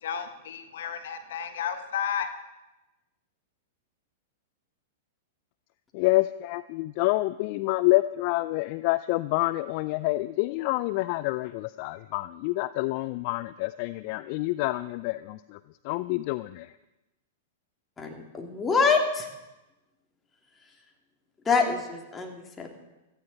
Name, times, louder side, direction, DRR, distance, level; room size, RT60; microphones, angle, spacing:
voice 1, 0.0-2.3, left 8 dB, 65° left, 9 dB, 1.1 m, -32 dB
voice 2, 5.9-15.6 15.8-16.7, left 20 dB, 50° left, 15 dB, 0.4 m, -27 dB
voice 3, 18.0-19.3 21.4-22.7, left 4 dB, 15° left, 1 dB, 2.8 m, -25 dB
17.0 x 14.0 x 4.2 m, 0.99 s
hypercardioid pair, 105°, 0 cm